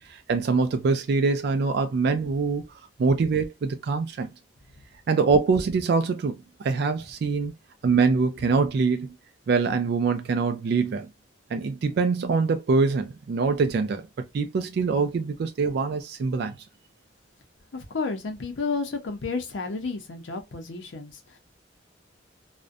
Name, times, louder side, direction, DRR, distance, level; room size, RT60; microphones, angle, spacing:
voice 1, 0.1-2.6 3.0-4.3 5.1-7.5 7.8-9.1 9.5-11.1 11.5-14.0 14.3-16.6, right 4 dB, 60° right, 0.3 m, -24 dB
voice 2, 17.7-21.4, left 4 dB, 75° left, 0.6 m, -31 dB
2.4 x 2.1 x 2.5 m
head